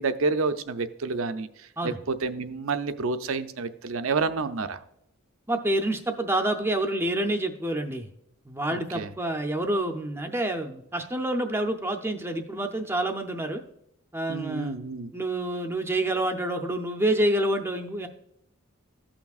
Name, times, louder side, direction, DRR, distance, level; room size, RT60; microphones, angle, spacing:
voice 1, 0.0-4.8 8.7-9.1 14.3-15.1, right 4 dB, 70° right, 10 dB, 0.6 m, -29 dB
voice 2, 5.5-8.1 8.5-13.6 14.1-14.8 15.1-18.1, right 1 dB, 10° right, 5 dB, 0.5 m, -27 dB
14.5 x 5.9 x 2.4 m, 0.80 s
head